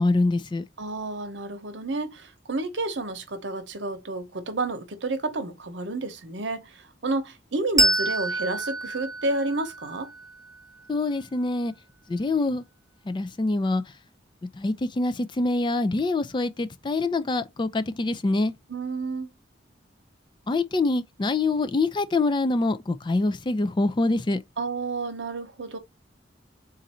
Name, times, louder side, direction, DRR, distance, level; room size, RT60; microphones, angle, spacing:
voice 1, 0.0-0.6 10.9-11.7 12.1-12.6 13.1-13.8 14.6-18.5 20.5-24.4, left 2 dB, 25° left, 0.4 m, -25 dB
voice 2, 0.8-6.7 7.0-10.1 18.7-19.3 24.6-25.8, right 2 dB, 70° right, 0.9 m, -30 dB
Bell, 7.8-10.9, right 1 dB, 20° right, 0.6 m, -27 dB
3.9 x 2.6 x 4.2 m
head